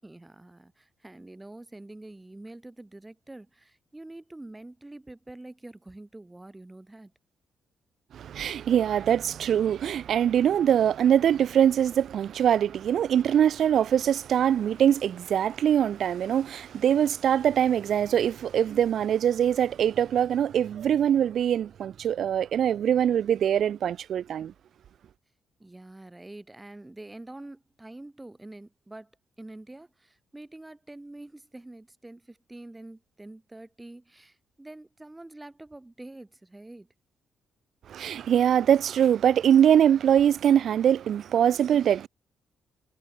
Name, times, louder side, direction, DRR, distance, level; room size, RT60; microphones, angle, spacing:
voice 1, 0.0-7.1 25.6-29.1 29.4-36.9, right 2 dB, 15° right, 6.8 m, -46 dB
voice 2, 8.1-24.5 37.9-42.1, right 9 dB, 60° right, 0.6 m, -23 dB
figure-of-eight pair, 40°, 0 cm